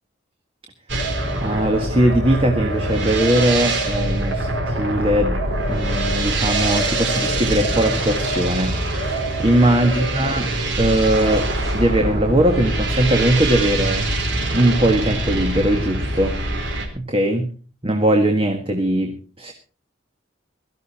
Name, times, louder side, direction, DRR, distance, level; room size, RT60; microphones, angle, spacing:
sound 1, 0.9-16.9, right 1 dB, 60° right, 3.7 m, -24 dB
voice 1, 1.4-5.4 5.7-11.5 11.7-16.4 16.9-17.5 17.8-19.5, right 1 dB, 25° right, 4 dB, 1.6 m, -20 dB
17.5 x 13.5 x 4.3 m, 0.38 s
head